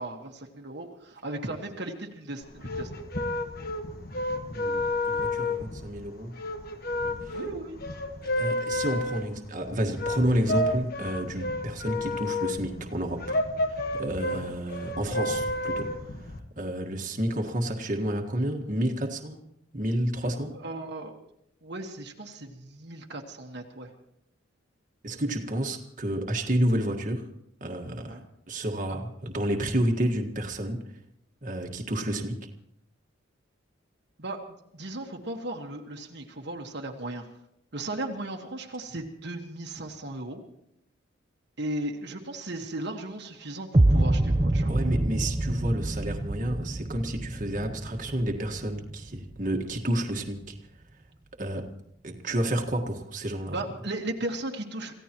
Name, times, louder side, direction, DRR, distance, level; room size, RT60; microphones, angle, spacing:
voice 1, 0.0-2.9 7.3-7.8 14.3-14.5 20.5-21.1 21.6-23.9 28.1-28.3 34.2-37.2 37.7-40.4 41.6-44.7 53.5-54.9, right 1 dB, 60° right, 1 dB, 1.5 m, -36 dB
sound 1, 2.4-16.4, left 2 dB, 50° left, 1.4 m, -31 dB
voice 2, 4.5-6.4 7.0-7.4 8.2-13.4 13.7-15.9 16.2-19.4 19.7-20.6 25.0-27.3 27.6-28.2 28.5-30.9 31.4-32.4 44.7-50.5 51.4-51.7 52.0-53.6, right 1 dB, 40° right, 2 dB, 1.6 m, -30 dB
sound 2, 43.7-49.8, right 1 dB, 25° right, 0.6 m, -26 dB
27.0 x 16.0 x 3.0 m, 0.77 s
head